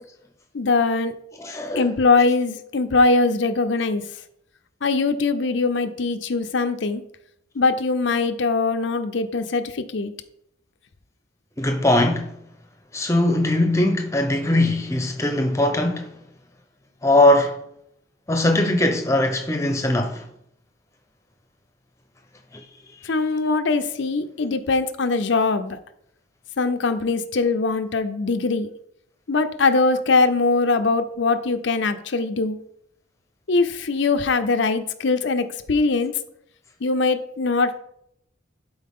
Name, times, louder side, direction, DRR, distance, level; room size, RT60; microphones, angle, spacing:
voice 1, 0.5-1.1 1.8-4.0 4.8-7.0 7.6-10.1 23.0-25.8 26.6-28.7 29.3-32.6 33.5-36.1 36.8-37.8, left 3 dB, 70° left, 0.6 m, -21 dB
voice 2, 1.4-2.0 11.6-12.3 12.9-16.1 17.0-17.6 18.3-20.2, left 1 dB, 15° left, 0.7 m, -20 dB
11.5 x 4.6 x 3.7 m
head